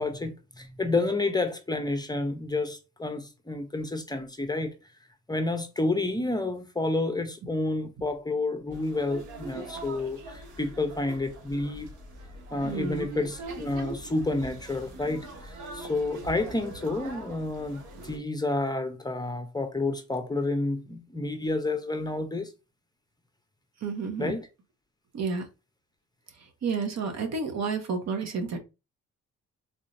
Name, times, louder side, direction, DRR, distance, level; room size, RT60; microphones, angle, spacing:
voice 1, 0.0-4.8 5.3-11.9 12.5-22.5 24.2-24.5, left 2 dB, 15° left, 0.8 m, -30 dB
sound 1, 8.7-18.2, right 2 dB, 80° right, 1.4 m, -42 dB
voice 2, 12.6-13.1 23.8-24.4 25.1-25.5 26.6-28.6, right 4 dB, 60° right, 1.1 m, -30 dB
3.9 x 3.0 x 2.6 m
cardioid pair, 90°, 30 cm